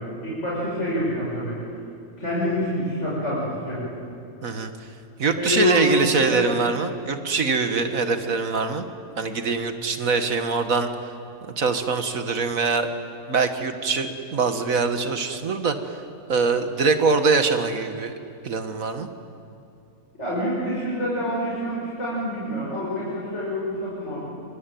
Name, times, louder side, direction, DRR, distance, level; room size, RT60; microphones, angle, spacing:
voice 1, 0.0-1.6 2.2-3.8 5.3-5.9 6.3-6.4 20.2-24.2, left 1 dB, 50° left, -7 dB, 7.1 m, -27 dB
voice 2, 4.4-4.7 5.2-8.8 9.2-11.1 11.6-12.9 13.3-16.0 16.3-18.1 18.4-19.1, right 4 dB, 65° right, 8 dB, 2.0 m, -23 dB
26.5 x 24.5 x 9.2 m, 2.6 s
omnidirectional pair, 1.5 m